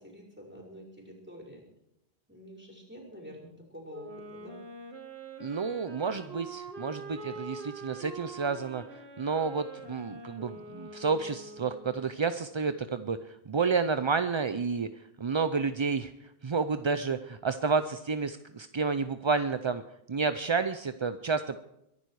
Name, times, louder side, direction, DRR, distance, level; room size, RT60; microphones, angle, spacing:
voice 1, 0.0-1.6 2.3-4.6, equal, 10° right, -2 dB, 5.3 m, -47 dB
Wind instrument woodwind instrument, 3.9-12.2, right 3 dB, 75° right, 2.3 m, -45 dB
voice 2, 5.4-14.9 15.2-19.8 20.1-21.6, right 5 dB, 35° right, 10 dB, 0.5 m, -30 dB
23.0 x 11.0 x 4.8 m, 0.82 s
omnidirectional pair, 1.1 m